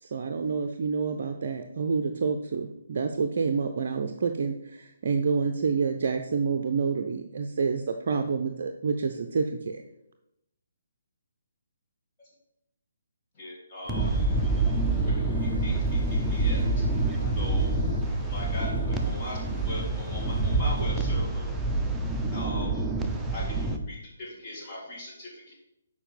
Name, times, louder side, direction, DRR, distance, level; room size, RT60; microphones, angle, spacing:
voice 1, 0.0-9.8, right 5 dB, 50° right, 0.5 m, -28 dB
voice 2, 13.3-14.3 15.0-15.1 15.4-16.6 17.3-17.7 18.3-19.4 19.6-21.5 22.3-22.8 23.3-23.6 23.9-25.5, left 1 dB, 30° left, 2.1 m, -40 dB
sound 1, 13.8-20.8, left 1 dB, 75° left, 1.7 m, -42 dB
voice 3, 13.9-23.8, right 2 dB, 5° right, 0.8 m, -27 dB
7.2 x 4.8 x 5.2 m
figure-of-eight pair, 140°, 0 cm